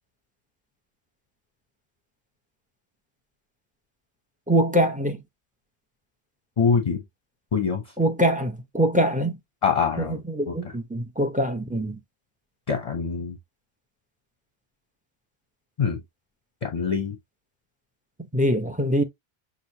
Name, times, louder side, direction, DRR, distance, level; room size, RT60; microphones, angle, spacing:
voice 1, 4.5-5.2 8.0-9.4 10.0-12.0 18.3-19.0, equal, 10° right, 0.7 m, -23 dB
voice 2, 6.6-7.0 7.5-7.9 9.6-10.2 10.5-10.6 12.7-13.4 15.8-16.0 16.6-17.2, left 5 dB, 40° left, 0.7 m, -24 dB
6.3 x 2.7 x 2.8 m
omnidirectional pair, 1.0 m